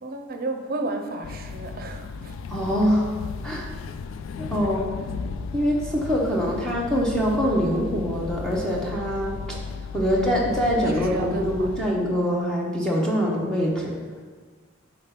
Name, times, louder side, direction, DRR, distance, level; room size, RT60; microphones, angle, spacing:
voice 1, 0.0-2.4 10.1-10.3 10.8-12.0, right 2 dB, 50° right, 5 dB, 0.6 m, -33 dB
sound 1, 1.2-11.9, left 5 dB, 70° left, 0.3 m, -35 dB
voice 2, 2.5-3.1 3.4-3.7 4.4-4.9 5.5-9.6 9.9-13.9, equal, 5° left, -4 dB, 0.9 m, -24 dB
5.1 x 4.0 x 5.8 m, 1.5 s
head